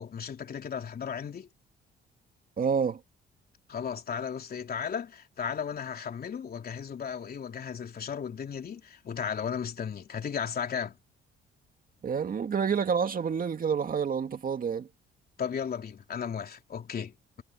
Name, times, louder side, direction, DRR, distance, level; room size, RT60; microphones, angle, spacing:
voice 1, 0.0-1.5 3.7-11.0 15.4-17.4, left 7 dB, 50° left, 3.4 m, -35 dB
voice 2, 2.6-3.0 12.0-14.9, right 6 dB, 45° right, 2.2 m, -28 dB
cardioid pair, 90°, 20 cm